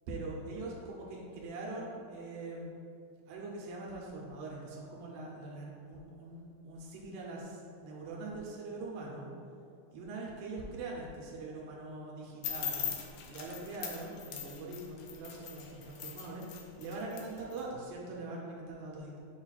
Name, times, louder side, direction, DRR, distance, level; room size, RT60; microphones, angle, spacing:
voice 1, 0.1-2.8 3.3-9.3 9.9-12.8 13.2-16.4 16.8-19.2, right 2 dB, 90° right, -3 dB, 2.5 m, -42 dB
sound 1, 12.4-17.6, left 8 dB, 85° left, 1.7 m, -40 dB
7.1 x 2.4 x 5.6 m, 2.5 s
omnidirectional pair, 3.9 m